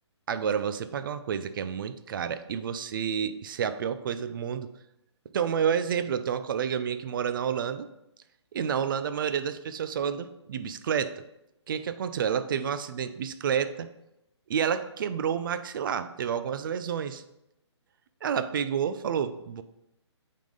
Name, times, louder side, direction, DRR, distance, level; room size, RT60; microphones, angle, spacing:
voice 1, 0.3-4.7 5.3-7.9 8.5-11.2 11.7-13.9 14.5-17.2 18.2-19.6, right 7 dB, 45° right, 12 dB, 0.5 m, -29 dB
8.3 x 3.8 x 3.8 m, 0.87 s
hypercardioid pair, 150°, 15 cm